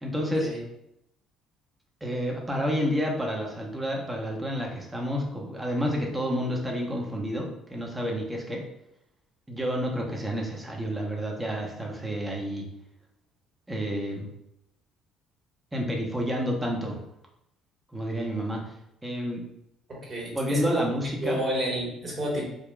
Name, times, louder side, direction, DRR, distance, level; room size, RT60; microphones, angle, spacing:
voice 1, 0.0-0.5 2.0-8.6 9.5-12.6 13.7-14.3 15.7-17.0 17.9-18.6 19.0-19.4 20.3-21.4, equal, 15° right, -1 dB, 0.8 m, -29 dB
voice 2, 19.9-20.8 21.2-22.5, right 1 dB, 40° right, -3 dB, 1.4 m, -30 dB
3.8 x 2.2 x 2.3 m, 0.81 s
hypercardioid pair, 50°, 0 cm